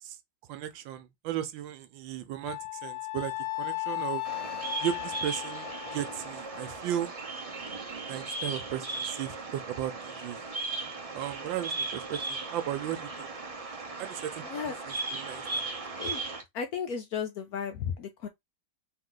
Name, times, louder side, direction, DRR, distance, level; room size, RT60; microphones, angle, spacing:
voice 1, 0.5-3.3 3.6-4.2 4.8-7.1 8.1-10.4 11.1-13.3 14.0-15.6, right 11 dB, 80° right, 1.4 m, -36 dB
Wind instrument woodwind instrument, 2.4-6.8, left 21 dB, 90° left, 1.5 m, -36 dB
Bird vocalization bird call bird song, 4.2-16.4, right 3 dB, 40° right, 0.5 m, -37 dB
voice 2, 16.5-18.3, left 7 dB, 70° left, 0.9 m, -34 dB
3.8 x 2.8 x 3.8 m
omnidirectional pair, 2.1 m